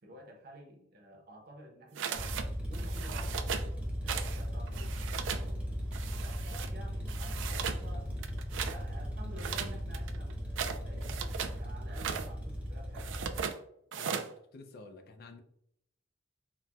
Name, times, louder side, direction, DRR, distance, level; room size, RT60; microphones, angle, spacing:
voice 1, 0.0-2.3 2.6-3.7 4.0-5.6 6.2-8.1 8.6-13.3, equal, 55° right, 0.7 m, -51 dB
sound 1, 2.0-2.5 2.7-3.7 4.1-4.4 4.7-5.5 5.9-6.7 7.1-7.8 8.2-8.8 9.4-11.6 11.9-12.3 12.9-13.6 13.9-14.3, right 7 dB, 70° right, 0.3 m, -37 dB
sound 2, 2.1-13.4, equal, 5° right, 0.7 m, -37 dB
voice 2, 13.9-15.4, left 3 dB, 55° left, 0.4 m, -51 dB
4.0 x 2.1 x 2.2 m
head